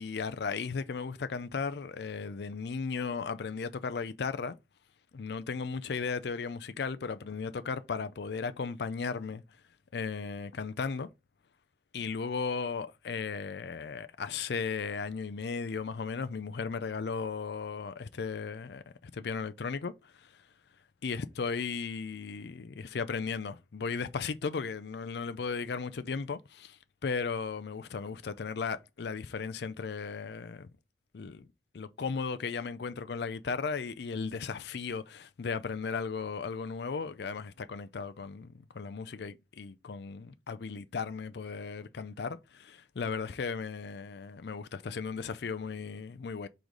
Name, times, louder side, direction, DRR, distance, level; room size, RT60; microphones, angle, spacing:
voice 1, 0.0-4.6 5.1-9.4 9.9-11.1 11.9-20.4 21.0-30.7 31.1-31.5 31.7-46.5, left 5 dB, 65° left, 0.4 m, -36 dB
4.7 x 3.9 x 5.0 m
head